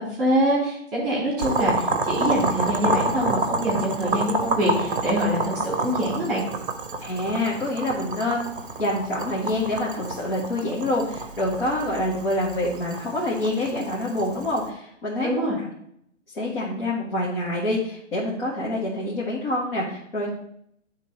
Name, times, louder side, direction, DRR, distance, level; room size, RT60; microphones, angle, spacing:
voice 1, 0.2-6.4 15.2-15.5, equal, 20° right, -6 dB, 3.0 m, -24 dB
Boiling, 1.4-14.6, right 2 dB, 45° right, 0.7 m, -28 dB
voice 2, 7.0-8.5 8.8-15.5 16.3-20.3, left 1 dB, 50° left, -6 dB, 1.8 m, -26 dB
10.0 x 3.7 x 4.2 m, 0.71 s
hypercardioid pair, 175°, 38 cm